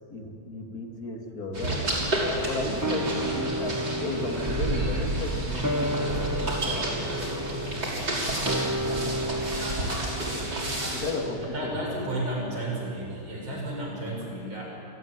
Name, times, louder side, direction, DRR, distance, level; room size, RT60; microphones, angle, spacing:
voice 1, 0.1-7.1 10.9-12.0, left 2 dB, 45° left, 2 dB, 3.0 m, -35 dB
sound 1, 1.5-11.1, right 1 dB, 55° right, 7.0 m, -30 dB
sound 2, 2.8-13.4 13.7-13.8, right 1 dB, 15° right, 0.6 m, -33 dB
voice 2, 11.4-14.7, right 1 dB, 70° right, -2 dB, 7.4 m, -32 dB
28.5 x 15.5 x 9.7 m, 2.7 s
omnidirectional pair, 2.2 m